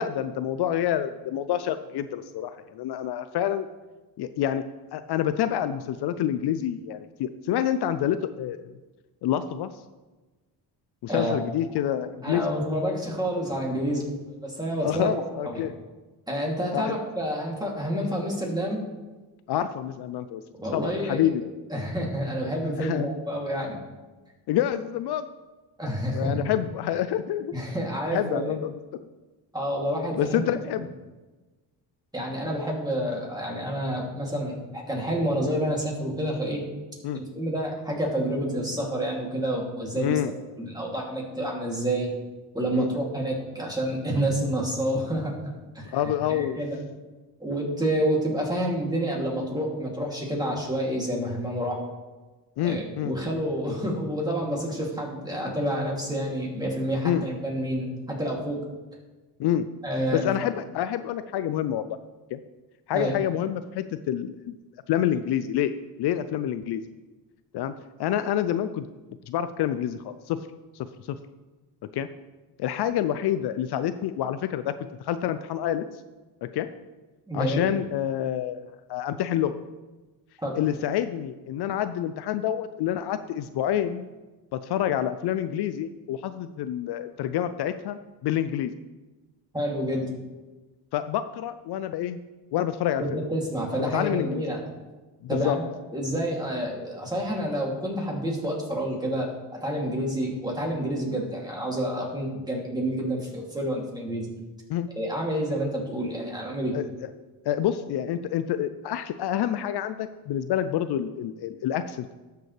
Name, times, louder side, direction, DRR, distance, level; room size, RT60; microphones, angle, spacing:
voice 1, 0.0-3.7 4.2-4.6 4.9-8.7 9.2-9.7 11.0-12.4 14.8-15.7 16.7-16.9 19.5-20.4 20.7-21.4 22.8-23.1 24.5-25.3 26.1-27.5 28.1-28.7 29.0-29.1 30.2-30.9 37.0-37.2 40.0-40.3 42.7-43.0 45.9-46.6 52.6-53.2 57.0-57.3 59.4-59.7 60.1-62.0 62.3-62.4 62.9-64.5 64.9-65.7 66.0-66.8 67.5-67.7 68.0-68.9 69.3-70.4 70.7-71.2 71.9-72.1 72.6-74.7 75.0-75.8 76.4-76.7 77.3-79.6 80.6-84.0 84.5-88.7 90.9-92.2 92.5-93.2 93.9-94.4 95.2-95.6 104.7-104.9 106.7-106.9 107.4-112.2, left 11 dB, 65° left, 11 dB, 0.5 m, -27 dB
voice 2, 12.2-14.1 14.4-15.1 15.4-15.7 16.3-18.8 20.6-21.3 21.7-23.8 25.8-26.4 27.5-28.6 29.5-30.4 32.1-36.6 37.1-40.2 40.6-42.1 42.5-45.4 45.7-45.9 46.3-46.8 47.4-51.8 52.6-58.6 59.8-60.2 62.9-63.1 77.3-77.7 80.4-80.6 89.5-90.0 93.0-94.6 95.3-95.6 95.9-104.3 105.0-106.7, equal, 10° right, -2 dB, 2.7 m, -28 dB
12.0 x 6.8 x 3.3 m, 1.2 s
cardioid pair, 85°, 42 cm